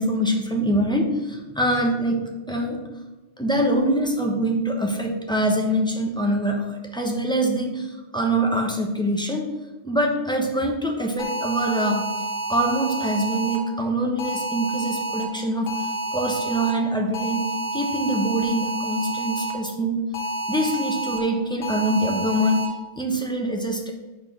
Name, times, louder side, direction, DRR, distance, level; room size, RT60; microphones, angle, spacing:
voice 1, 0.0-2.2 2.5-2.8 3.4-9.5 9.8-12.0 12.5-17.5 17.7-20.0 20.5-22.6 23.0-23.9, right 1 dB, 5° left, 0 dB, 0.9 m, -24 dB
sound 1, 11.2-13.6 14.2-15.2 15.7-16.7 17.1-19.5 20.1-21.2 21.6-22.6, right 2 dB, 80° left, 1.5 m, -29 dB
5.6 x 4.6 x 6.1 m, 1.1 s
omnidirectional pair, 1.2 m